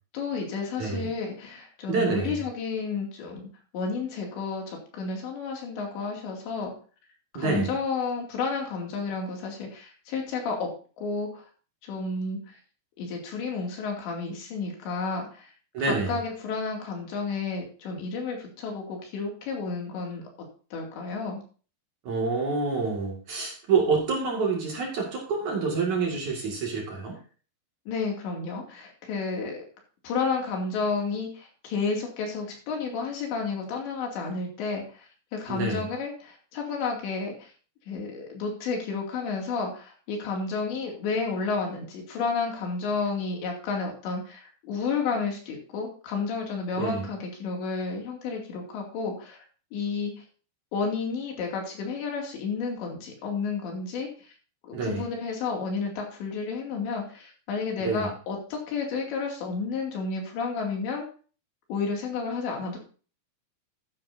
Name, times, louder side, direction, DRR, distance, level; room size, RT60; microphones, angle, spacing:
voice 1, 0.1-6.7 7.3-10.7 11.0-11.4 11.8-12.4 13.0-15.5 15.8-20.2 20.7-21.4 27.9-29.6 30.0-37.5 37.9-49.4 49.7-50.1 50.7-54.3 54.6-61.1 61.7-62.8, left 4 dB, 75° left, 1 dB, 4.8 m, -31 dB
voice 2, 0.8-1.1 1.9-2.4 7.3-7.7 15.7-16.1 22.0-27.2 35.5-35.9 46.8-47.1 54.7-55.0 57.8-58.1, right 4 dB, 50° right, -1 dB, 3.0 m, -27 dB
13.0 x 10.5 x 2.7 m, 0.39 s
omnidirectional pair, 5.1 m